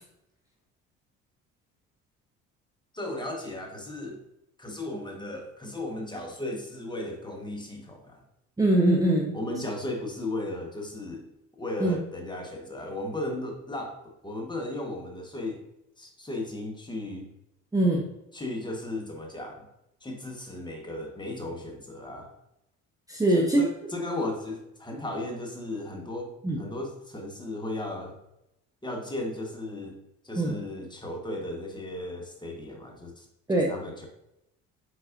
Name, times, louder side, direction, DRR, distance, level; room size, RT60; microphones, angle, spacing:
voice 1, 2.9-4.2 4.6-8.2 9.3-11.2 11.5-15.6 16.0-17.3 18.3-19.7 20.0-22.3 23.3-28.2 28.8-30.0 30.2-34.1, left 1 dB, 15° left, 2 dB, 1.1 m, -35 dB
voice 2, 8.6-9.3 11.8-12.0 17.7-18.1 23.1-23.6 26.4-26.6 30.4-30.6 33.5-33.7, right 1 dB, 10° right, -1 dB, 0.8 m, -22 dB
4.7 x 4.1 x 2.5 m, 0.85 s
supercardioid pair, 70°, 31 cm